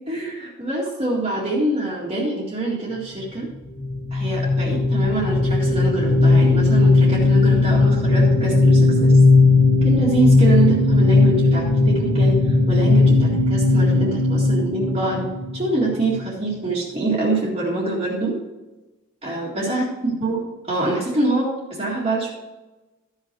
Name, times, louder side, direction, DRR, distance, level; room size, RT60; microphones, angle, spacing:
voice 1, 0.1-3.5 4.1-9.1 9.8-15.2 15.5-18.4 19.2-22.3, right 2 dB, 25° right, -6 dB, 2.0 m, -25 dB
sound 1, 3.8-16.2, left 3 dB, 85° left, 1.9 m, -17 dB
14.0 x 5.7 x 4.5 m, 1.1 s
head